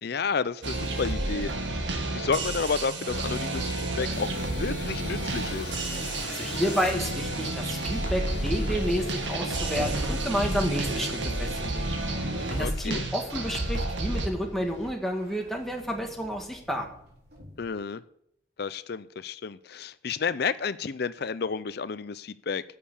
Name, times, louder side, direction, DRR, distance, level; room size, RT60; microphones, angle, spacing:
voice 1, 0.0-1.8 2.1-5.8 12.6-13.0 17.6-18.0 18.6-22.6, left 5 dB, 55° left, 14 dB, 0.5 m, -31 dB
sound 1, 0.6-14.3, right 2 dB, 80° right, 1.8 m, -30 dB
sound 2, 4.1-14.9, left 2 dB, 75° left, 1.8 m, -42 dB
voice 2, 6.3-11.9 12.5-16.9, equal, ahead, 1 dB, 1.7 m, -30 dB
sound 3, 8.2-14.1 14.4-17.7, equal, 55° right, 3.7 m, -44 dB
11.0 x 6.7 x 8.3 m, 0.72 s
head